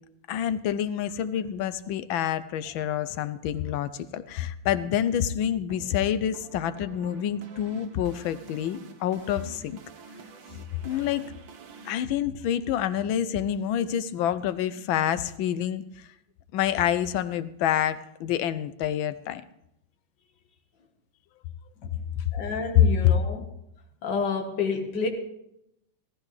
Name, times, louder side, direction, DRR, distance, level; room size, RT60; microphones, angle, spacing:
voice 1, 0.3-9.8 10.8-11.3 11.8-16.1 16.5-19.4, left 10 dB, 80° left, 14 dB, 1.4 m, -28 dB
sound 1, 5.1-11.9, right 4 dB, 70° right, 1.8 m, -48 dB
voice 2, 22.3-23.4 24.0-25.1, left 4 dB, 65° left, 3 dB, 2.0 m, -29 dB
16.5 x 14.5 x 3.2 m, 0.80 s
omnidirectional pair, 2.2 m